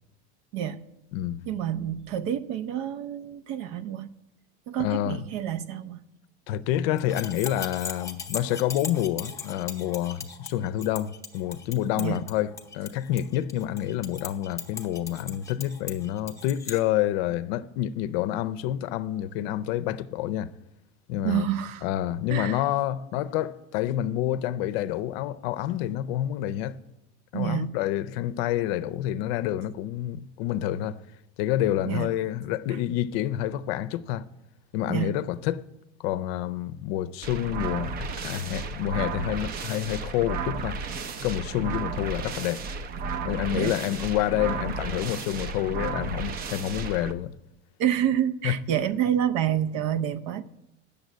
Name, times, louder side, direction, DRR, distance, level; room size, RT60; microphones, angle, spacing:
voice 1, 1.5-4.1 4.7-6.0 12.0-12.2 21.2-21.9 22.3-22.6 27.3-27.7 31.8-32.1 34.9-35.1 43.5-43.8 47.8-50.4, right 10 dB, 65° right, 0.7 m, -28 dB
voice 2, 4.8-5.2 6.5-20.5 21.1-21.5 21.8-26.8 27.3-31.0 31.4-34.3 34.7-35.6 36.0-40.8 41.2-42.7 43.2-47.3 48.4-48.6, left 12 dB, 65° left, 0.6 m, -28 dB
sound 1, 7.0-16.8, left 5 dB, 10° left, 0.7 m, -39 dB
sound 2, 37.2-47.1, right 4 dB, 30° right, 0.5 m, -33 dB
7.9 x 6.9 x 8.4 m
supercardioid pair, 155°, 32 cm